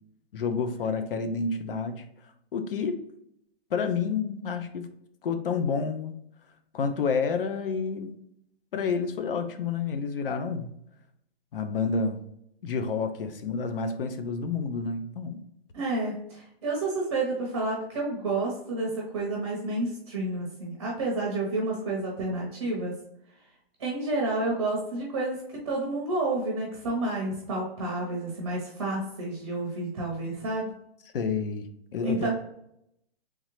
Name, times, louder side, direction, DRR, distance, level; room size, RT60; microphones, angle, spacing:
voice 1, 0.3-2.0 2.5-3.0 3.7-5.0 5.2-6.1 6.7-8.1 8.7-10.7 11.5-12.2 12.6-15.4 31.1-32.3, left 5 dB, 60° left, 8 dB, 0.6 m, -29 dB
voice 2, 15.7-22.9 23.8-30.7 32.0-32.3, right 2 dB, 25° right, -3 dB, 0.6 m, -30 dB
3.6 x 3.2 x 3.0 m, 0.76 s
hypercardioid pair, 170°, 32 cm